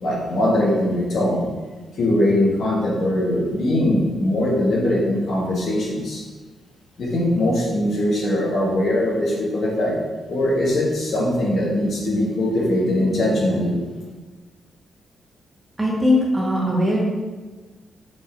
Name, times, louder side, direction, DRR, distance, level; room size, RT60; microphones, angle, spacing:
voice 1, 0.0-1.4 2.0-6.2 7.0-9.9 10.3-13.8, left 1 dB, 50° left, -3 dB, 1.5 m, -21 dB
voice 2, 15.8-17.0, left 1 dB, 15° right, -3 dB, 1.0 m, -19 dB
6.2 x 4.1 x 4.5 m, 1.3 s
wide cardioid pair, 175°, 0 cm